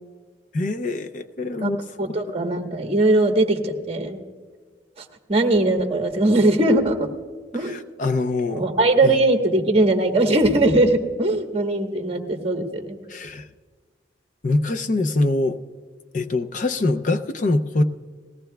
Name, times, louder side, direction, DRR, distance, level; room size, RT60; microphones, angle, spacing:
voice 1, 0.5-1.8 7.6-8.7 9.0-9.2 13.1-13.5 14.4-15.6 16.1-17.8, left 2 dB, 45° left, 8 dB, 0.5 m, -23 dB
voice 2, 2.0-4.2 5.0-5.1 5.3-7.1 7.5-7.8 8.5-13.0, right 2 dB, 30° right, 4 dB, 1.1 m, -20 dB
19.5 x 16.5 x 2.3 m, 1.5 s
head